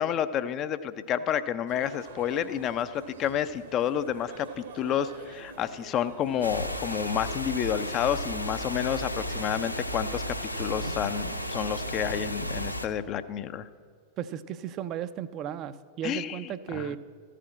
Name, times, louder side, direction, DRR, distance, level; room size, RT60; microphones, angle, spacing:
voice 1, 0.0-13.7 16.0-17.0, left 9 dB, 35° left, 12 dB, 0.4 m, -30 dB
sound 1, 1.7-12.0, right 4 dB, 65° right, 1.1 m, -47 dB
sound 2, 6.4-12.9, equal, 85° left, 0.5 m, -33 dB
voice 2, 14.2-17.0, right 10 dB, 35° right, 13 dB, 0.4 m, -35 dB
13.5 x 5.0 x 8.5 m, 2.1 s
figure-of-eight pair, 90°, 0 cm